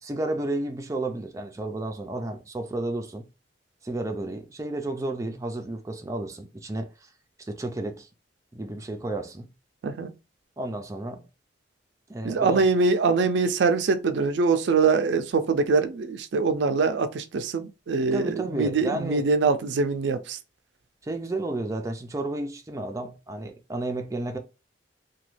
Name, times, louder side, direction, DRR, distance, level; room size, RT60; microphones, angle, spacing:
voice 1, 0.0-3.3 3.8-7.1 7.4-8.1 8.5-9.5 10.6-11.2 12.1-12.6 18.1-19.3 21.0-24.4, right 2 dB, 20° right, 0.4 m, -32 dB
voice 2, 12.2-20.4, right 4 dB, 85° right, 0.4 m, -23 dB
3.0 x 2.2 x 3.1 m
head